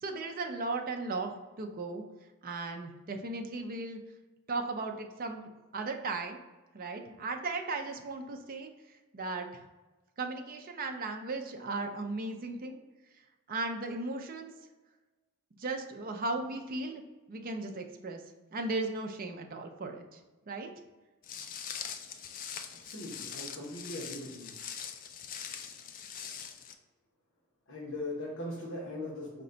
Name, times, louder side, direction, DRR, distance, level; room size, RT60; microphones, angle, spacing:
voice 1, 0.0-2.0 2.4-4.0 4.5-6.4 6.7-8.7 9.1-9.6 10.2-12.8 13.5-14.5 15.6-17.0 17.3-18.2 18.5-20.2 20.5-20.7, right 3 dB, 40° right, 4 dB, 0.5 m, -36 dB
Walk footsteps, 21.2-26.7, left 7 dB, 40° left, 0.3 m, -42 dB
voice 2, 22.8-24.5 27.7-29.4, left 1 dB, 60° left, -6 dB, 1.0 m, -40 dB
5.0 x 2.2 x 3.8 m, 1.2 s
head